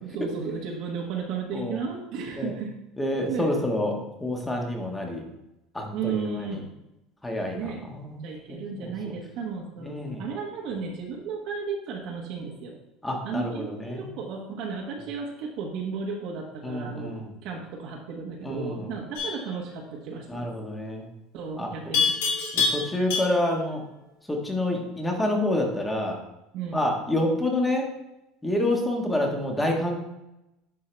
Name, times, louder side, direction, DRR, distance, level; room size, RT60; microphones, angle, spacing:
voice 1, 0.0-2.8 3.3-3.6 5.9-6.7 7.5-7.9 8.2-12.8 13.2-20.5 21.3-22.1 26.5-26.9, right 5 dB, 60° right, 0 dB, 1.3 m, -34 dB
voice 2, 3.0-3.9 4.2-5.2 5.7-6.5 7.2-8.2 8.5-9.1 9.8-10.2 13.0-14.1 16.6-17.3 18.4-18.9 20.3-21.1 21.6-21.7 22.5-23.8 24.3-26.2 26.7-27.9 28.4-30.0, left 1 dB, 10° left, 1 dB, 1.4 m, -28 dB
Livestock farm animals working animals, 19.2-19.5 21.9-23.6, left 5 dB, 85° left, 2.9 m, -26 dB
10.5 x 4.7 x 3.4 m, 0.92 s
supercardioid pair, 135°, 0 cm